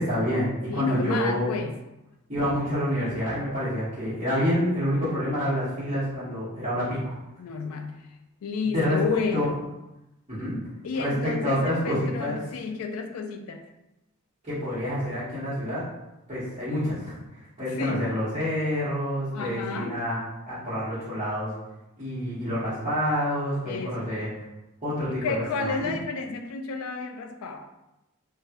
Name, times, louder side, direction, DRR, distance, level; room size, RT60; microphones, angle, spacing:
voice 1, 0.0-1.5 2.3-7.1 8.6-9.0 9.3-9.4 10.3-10.6 10.9-12.4 14.4-15.8 16.3-20.2 20.5-21.5 22.0-24.3 24.8-26.0, equal, 25° right, -16 dB, 1.1 m, -28 dB
voice 2, 0.7-1.7 7.4-8.0 8.4-9.5 10.8-13.7 17.7-18.1 19.3-20.0 23.7-24.1 25.1-27.6, left 4 dB, 75° left, 6 dB, 0.4 m, -31 dB
3.1 x 2.3 x 2.8 m, 0.95 s
head